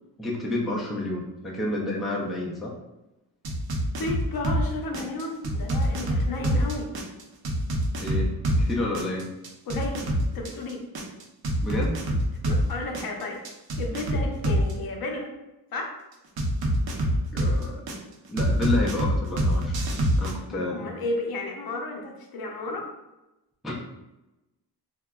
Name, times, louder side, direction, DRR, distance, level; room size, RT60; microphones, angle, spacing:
voice 1, 0.2-2.7 8.0-8.3 8.6-9.3 11.6-12.0 17.3-17.8 18.3-19.8 20.2-20.9 23.6-23.7, left 2 dB, ahead, -3 dB, 0.3 m, -30 dB
sound 1, 3.4-4.6 4.9-8.6 8.9-12.6 12.9-14.7 16.4-17.9 18.4-20.3, right 1 dB, 65° right, 0.6 m, -25 dB
voice 2, 4.0-6.9 9.7-10.1 10.3-10.8 12.5-13.4 13.8-15.3 15.7-15.9 20.5-22.9, left 2 dB, 65° left, 1 dB, 0.6 m, -32 dB
3.6 x 2.1 x 2.2 m, 0.97 s
wide cardioid pair, 140°, 39 cm